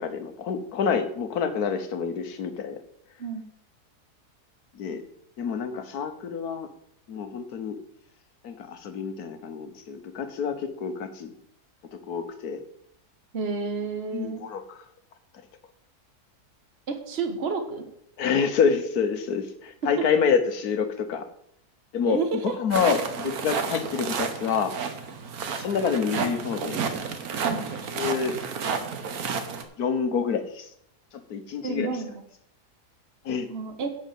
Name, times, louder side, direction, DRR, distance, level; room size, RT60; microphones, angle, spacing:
voice 1, 0.0-2.8 4.7-5.0 5.4-6.7 7.1-7.8 8.4-11.3 12.1-12.6 14.1-14.8 18.2-21.2 21.9-22.2 22.4-24.7 25.6-26.8 27.9-28.4 29.8-30.7 31.3-31.9 33.2-33.5, left 6 dB, 70° left, 9 dB, 1.5 m, -27 dB
voice 2, 13.3-14.4 16.9-17.9 18.4-18.5 19.8-20.1 22.1-22.6 27.4-27.7 31.6-32.1 33.5-33.9, right 4 dB, 40° right, 6 dB, 1.5 m, -30 dB
sound 1, 22.7-29.6, right 5 dB, 65° right, 1.5 m, -31 dB
11.0 x 5.1 x 7.5 m, 0.73 s
omnidirectional pair, 1.7 m